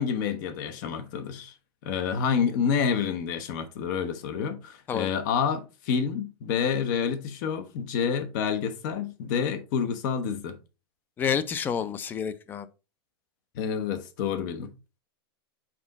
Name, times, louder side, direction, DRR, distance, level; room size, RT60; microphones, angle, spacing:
voice 1, 0.0-1.5 1.8-10.6 13.5-14.7, left 7 dB, 50° left, 1.1 m, -28 dB
voice 2, 11.2-12.7, left 7 dB, 15° left, 0.4 m, -29 dB
6.1 x 4.2 x 4.0 m
supercardioid pair, 160°, 13 cm